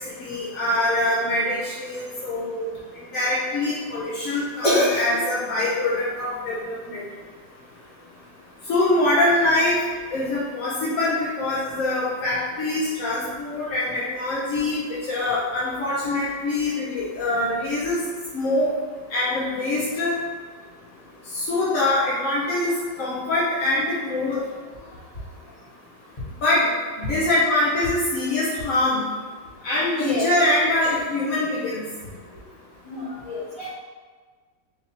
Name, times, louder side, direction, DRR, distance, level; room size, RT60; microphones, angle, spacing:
voice 1, 0.1-2.7 3.1-7.0 8.7-9.8 10.1-18.0 18.3-18.7 19.1-20.2 21.3-22.7 23.0-24.4 26.4-29.0 29.6-31.8, left 2 dB, 60° left, -8 dB, 1.0 m, -24 dB
voice 2, 4.6-5.0 30.0-30.3 32.8-33.7, left 1 dB, 25° left, -8 dB, 1.0 m, -24 dB
4.1 x 2.6 x 4.3 m, 1.5 s
omnidirectional pair, 2.0 m